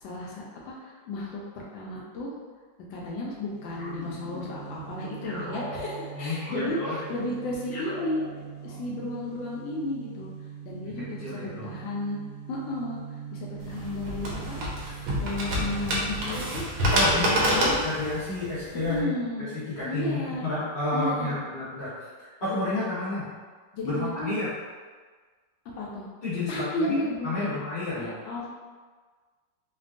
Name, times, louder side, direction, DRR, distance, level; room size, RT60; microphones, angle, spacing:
voice 1, 0.0-2.4 2.9-8.2 8.6-10.3 10.6-12.2 12.5-13.0 13.3-16.7 17.1-17.8 18.9-19.5 19.9-20.4 20.9-21.4 23.7-24.3 25.8-26.1 26.5-27.5 28.0-28.5, left 2 dB, 85° left, -3 dB, 1.3 m, -33 dB
sound 1, 3.3-17.9, right 8 dB, 90° right, 0.7 m, -43 dB
sound 2, 3.8-4.7 5.2-8.9, left 1 dB, 60° left, 0.8 m, -41 dB
voice 2, 6.1-7.0 10.8-11.7 16.9-17.3 17.8-19.1 19.7-21.9 22.2-23.3 23.8-24.5 26.2-26.9 27.2-28.1, left 2 dB, 25° left, -11 dB, 1.0 m, -30 dB
sound 3, 13.6-19.0, equal, 70° right, 1.0 m, -27 dB
3.3 x 2.2 x 2.5 m, 1.5 s
omnidirectional pair, 2.0 m